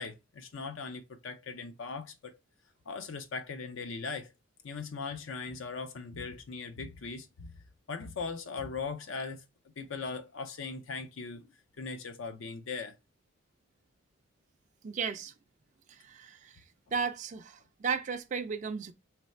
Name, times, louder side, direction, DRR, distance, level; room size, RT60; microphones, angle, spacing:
voice 1, 0.0-2.4 2.9-4.3 4.6-9.4 9.8-11.5 11.8-13.0, left 4 dB, 70° left, 0.5 m, -39 dB
voice 2, 14.8-15.3 16.0-16.6 16.9-18.9, right 5 dB, 35° right, 0.3 m, -34 dB
3.3 x 3.2 x 4.1 m
head